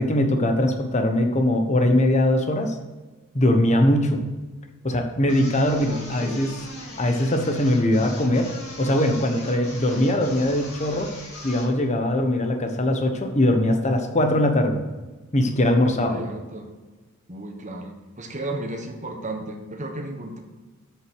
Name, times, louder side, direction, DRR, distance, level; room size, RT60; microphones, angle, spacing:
voice 1, 0.0-2.7 3.3-4.2 4.8-6.5 7.0-8.5 8.8-11.1 11.4-14.8 15.3-16.2, left 1 dB, 30° left, 5 dB, 1.1 m, -21 dB
sound 1, 5.3-11.8, left 2 dB, 70° left, 2.5 m, -40 dB
voice 2, 5.8-6.5 15.9-16.7 17.3-20.4, right 1 dB, 35° right, 3 dB, 1.3 m, -34 dB
8.0 x 6.4 x 6.3 m, 1.2 s
head